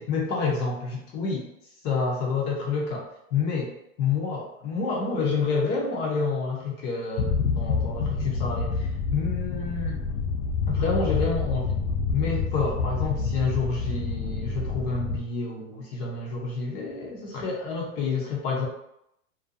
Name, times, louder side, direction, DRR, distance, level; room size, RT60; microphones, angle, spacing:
voice 1, 0.0-1.5 1.8-3.7 4.0-10.0 10.7-11.8 12.1-18.7, left 4 dB, 25° left, -2 dB, 0.4 m, -28 dB
sound 1, 7.2-15.2, left 4 dB, 80° left, 0.6 m, -28 dB
2.5 x 2.1 x 2.6 m, 0.78 s
supercardioid pair, 140°, 41 cm